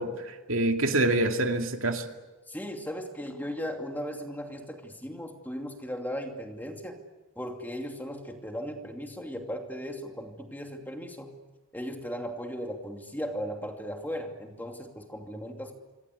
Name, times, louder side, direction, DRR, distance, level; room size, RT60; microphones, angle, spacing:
voice 1, 0.0-2.0, right 2 dB, 85° right, 4 dB, 2.4 m, -26 dB
voice 2, 2.5-7.0 7.4-11.3 11.7-15.7, equal, 10° left, 3 dB, 2.6 m, -37 dB
26.5 x 25.5 x 8.2 m, 1.2 s
head